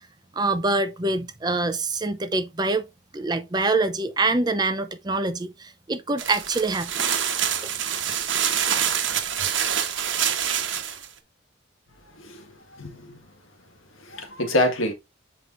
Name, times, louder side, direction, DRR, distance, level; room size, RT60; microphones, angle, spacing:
voice 1, 0.3-2.9 3.1-7.1, right 2 dB, 20° right, 0.6 m, -25 dB
sound 1, 6.2-11.1, right 9 dB, 70° right, 1.1 m, -26 dB
voice 2, 12.1-13.2 14.0-14.9, left 1 dB, 90° left, 1.7 m, -27 dB
7.8 x 4.8 x 2.6 m
head